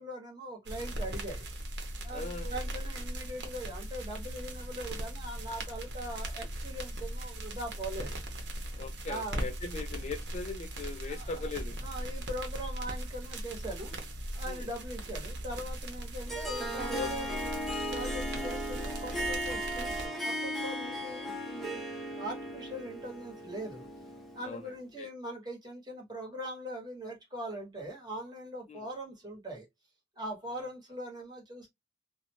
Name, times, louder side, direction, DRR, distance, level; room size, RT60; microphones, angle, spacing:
voice 1, 0.0-1.5 2.0-8.1 9.1-9.5 11.1-11.5 11.8-14.0 14.3-17.2 17.9-23.9 24.3-29.7 30.1-31.7, right 1 dB, 25° right, 1.1 m, -41 dB
sound 1, 0.7-20.1, right 1 dB, 75° right, 0.8 m, -39 dB
voice 2, 2.1-2.6 8.8-11.8 14.5-14.7 16.9-17.6 20.8-20.9 24.4-25.1 28.7-28.9, left 3 dB, 40° left, 0.3 m, -40 dB
Harp, 16.3-24.7, equal, ahead, 0.7 m, -37 dB
2.5 x 2.1 x 2.8 m
head